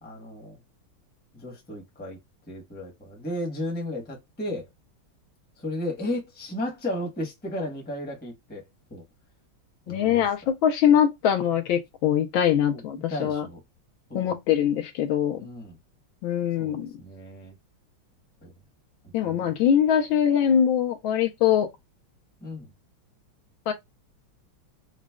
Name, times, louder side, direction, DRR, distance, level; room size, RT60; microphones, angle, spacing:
voice 1, 0.0-0.6 1.3-2.2 2.5-4.7 5.6-8.6 8.9-9.0 9.9-10.3 12.7-12.8 13.1-13.6 14.1-14.4 15.4-15.7 16.6-17.5 18.4-18.5 19.2-19.5 22.4-22.7, left 1 dB, 5° left, 0.7 m, -34 dB
voice 2, 9.9-13.5 14.1-15.4 16.2-16.9 19.1-21.7 23.7-23.8, left 9 dB, 75° left, 1.4 m, -22 dB
5.1 x 2.1 x 2.3 m
omnidirectional pair, 2.3 m